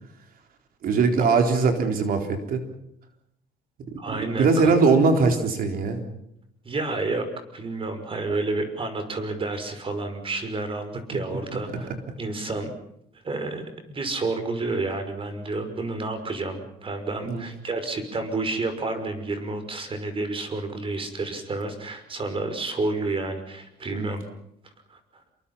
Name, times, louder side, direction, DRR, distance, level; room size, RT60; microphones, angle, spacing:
voice 1, 0.8-2.6 3.9-4.0 4.4-6.0 11.1-11.2 17.3-17.4 23.9-24.1, right 4 dB, 60° right, 5 dB, 4.1 m, -21 dB
voice 2, 4.0-4.8 6.6-7.3 7.5-11.9 12.2-12.7 13.2-24.2 24.9-25.0, right 3 dB, 30° right, 8 dB, 5.7 m, -30 dB
28.0 x 23.5 x 5.7 m, 0.77 s
cardioid pair, 110°, 17 cm